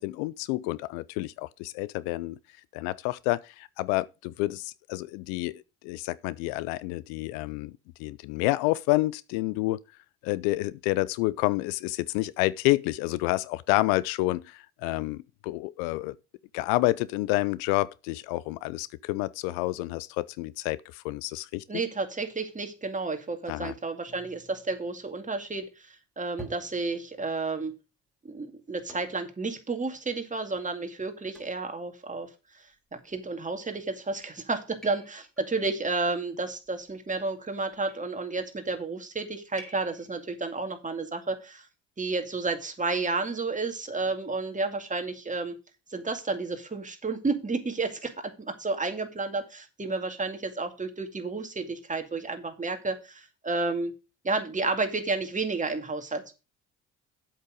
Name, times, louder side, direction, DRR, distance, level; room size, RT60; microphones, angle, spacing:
voice 1, 0.0-2.4 2.7-7.7 8.0-9.8 10.2-16.1 16.5-21.6 23.5-23.7, left 19 dB, 70° left, 0.5 m, -29 dB
voice 2, 21.7-27.7 28.2-32.7 32.9-41.7 42.0-45.6 45.9-53.9 54.2-56.3, right 3 dB, 20° right, 2.3 m, -31 dB
sound 1, 24.1-25.5 26.4-27.3 28.9-29.4 29.9-30.0 30.6-30.7 31.3-31.7 32.8-33.3 33.9-34.2 34.8-35.5 36.6-37.2 37.7-38.2 39.6-40.2, equal, ahead, 4.3 m, -50 dB
8.1 x 7.7 x 5.0 m
hypercardioid pair, 60°, 35 cm